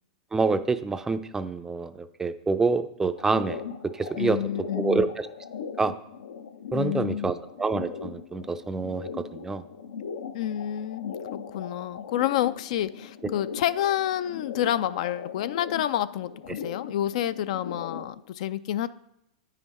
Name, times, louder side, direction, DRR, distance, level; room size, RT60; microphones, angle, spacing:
voice 1, 0.3-3.6 3.9-4.4 4.8-5.3 5.8-5.9 6.7-9.6, right 4 dB, 10° right, 11 dB, 0.4 m, -27 dB
sound 1, 3.2-18.1, left 6 dB, 85° left, 0.7 m, -39 dB
voice 2, 4.2-5.1 6.7-7.4 10.3-18.9, left 12 dB, 60° left, 14 dB, 0.4 m, -29 dB
8.8 x 5.7 x 4.1 m, 0.81 s
hypercardioid pair, 125°, 4 cm